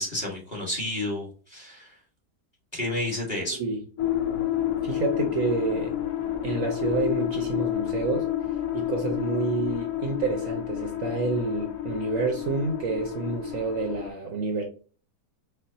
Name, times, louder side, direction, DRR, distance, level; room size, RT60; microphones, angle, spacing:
voice 1, 0.0-2.0 2.7-3.6, left 1 dB, 30° left, 1.1 m, -31 dB
sound 1, 4.0-14.1, left 12 dB, 70° left, 1.2 m, -30 dB
voice 2, 4.8-5.9 6.4-8.3 8.7-14.6, right 4 dB, 60° right, 0.9 m, -28 dB
4.6 x 2.0 x 2.6 m
omnidirectional pair, 1.8 m